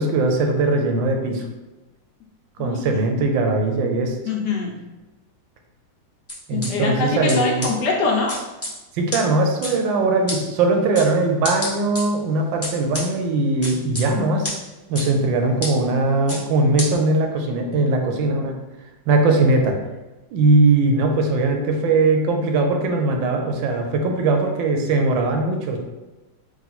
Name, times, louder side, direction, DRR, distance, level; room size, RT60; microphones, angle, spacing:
voice 1, 0.0-1.4 2.6-4.1 6.5-7.7 8.9-14.5 14.9-18.5 19.1-19.7 20.3-25.8, right 2 dB, 80° right, 3 dB, 1.3 m, -20 dB
voice 2, 4.3-4.7 6.5-8.3, left 4 dB, 70° left, 0 dB, 1.2 m, -23 dB
sound 1, 6.3-6.7 7.3-7.4 7.6-7.7 8.3-8.7 9.1-9.2 9.6-9.7 10.3-10.4 10.9-11.1 11.4-12.0 12.6-13.0 13.6-14.0 14.4-14.5 14.9-15.1 15.6-15.7 16.3-16.4 16.8-16.9, left 1 dB, 10° left, 0.8 m, -28 dB
3.7 x 2.5 x 4.1 m, 1.1 s
omnidirectional pair, 2.1 m